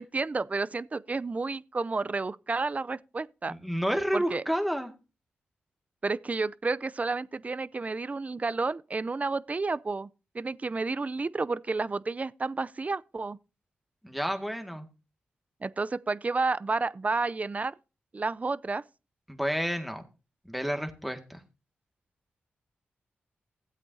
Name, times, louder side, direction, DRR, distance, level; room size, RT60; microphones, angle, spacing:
voice 1, 0.0-3.5 4.1-4.4 6.0-10.1 10.3-13.4 15.6-17.7 18.1-18.8, right 3 dB, 35° right, 0.5 m, -31 dB
voice 2, 3.5-4.9 14.0-14.9 19.3-20.0 20.5-21.4, equal, ahead, 1.9 m, -30 dB
15.5 x 8.3 x 2.7 m
cardioid pair, 55°, 4 cm